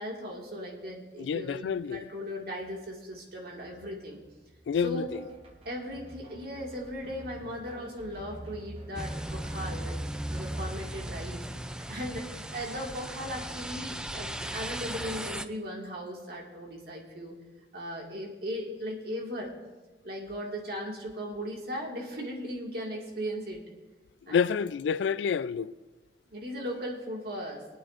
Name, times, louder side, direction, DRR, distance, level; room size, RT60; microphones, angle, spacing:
voice 1, 0.0-4.2 4.8-5.1 5.7-10.0 10.3-11.4 11.9-17.3 17.7-19.5 20.0-23.6 24.3-24.6 26.3-27.7, equal, 60° right, 2.0 m, -37 dB
voice 2, 1.2-2.0 4.7-5.1 24.3-25.7, left 6 dB, 80° left, 0.3 m, -28 dB
sound 1, 2.6-2.8 3.1-9.9, right 1 dB, 30° right, 1.1 m, -48 dB
sound 2, 8.9-15.4, right 1 dB, 5° right, 0.3 m, -37 dB
25.0 x 9.1 x 2.5 m
head